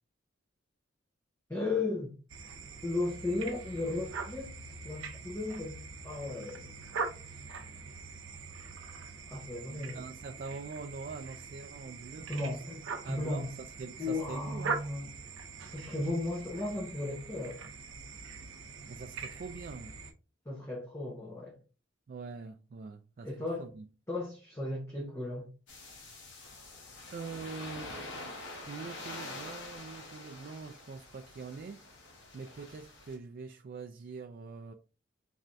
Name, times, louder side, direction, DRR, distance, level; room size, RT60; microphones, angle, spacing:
voice 1, 1.5-2.1 2.8-6.7 9.3-10.1 12.3-12.8 13.1-13.5 14.0-15.1 15.7-17.6 20.5-21.6 23.2-23.7 24.1-25.5, left 2 dB, 15° left, 0.8 m, -35 dB
sound 1, 2.3-20.1, right 4 dB, 85° right, 0.6 m, -43 dB
voice 2, 9.7-12.6 13.0-14.8 18.9-20.0 22.1-23.3 23.6-23.8 27.1-28.0 28.6-31.8 32.3-34.7, right 4 dB, 50° right, 0.3 m, -44 dB
sound 2, 25.7-33.2, left 2 dB, 65° left, 1.3 m, -46 dB
4.2 x 3.3 x 2.5 m
head